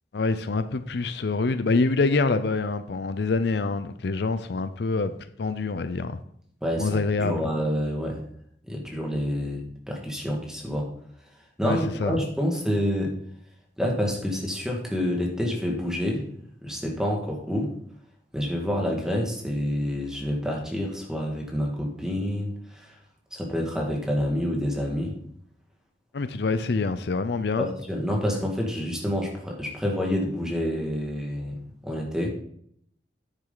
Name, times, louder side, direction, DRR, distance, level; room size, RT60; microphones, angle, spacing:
voice 1, 0.1-6.2 6.8-7.5 11.6-12.2 26.1-27.7, left 3 dB, 65° left, 11 dB, 0.5 m, -26 dB
voice 2, 6.6-8.2 8.6-10.9 11.6-13.1 13.8-16.3 16.6-17.7 18.3-23.0 23.3-25.2 27.6-31.6 31.8-32.3, equal, 5° right, -1 dB, 1.8 m, -28 dB
9.7 x 7.4 x 3.9 m, 0.67 s
head